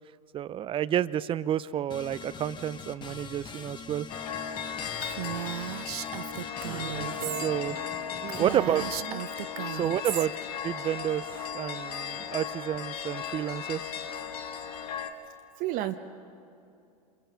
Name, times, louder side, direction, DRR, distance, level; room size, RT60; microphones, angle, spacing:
voice 1, 0.3-4.1 7.4-7.8 8.4-8.8 9.7-10.3 10.6-11.3 11.5-13.9, right 10 dB, 25° right, 17 dB, 0.6 m, -30 dB
sound 1, 1.9-9.0, left 5 dB, 25° left, 1.2 m, -44 dB
sound 2, 4.1-15.1, left 7 dB, 75° left, 1.7 m, -36 dB
Female speech woman speaking, 5.0-7.5 7.8-7.9 8.3-10.3, right 16 dB, 75° right, 0.4 m, -36 dB
voice 2, 6.6-7.5 8.2-8.4 9.1-9.2 15.6-16.0, right 14 dB, 45° right, 6 dB, 1.0 m, -34 dB
27.0 x 22.5 x 5.7 m, 2.6 s
hypercardioid pair, 105°, 20 cm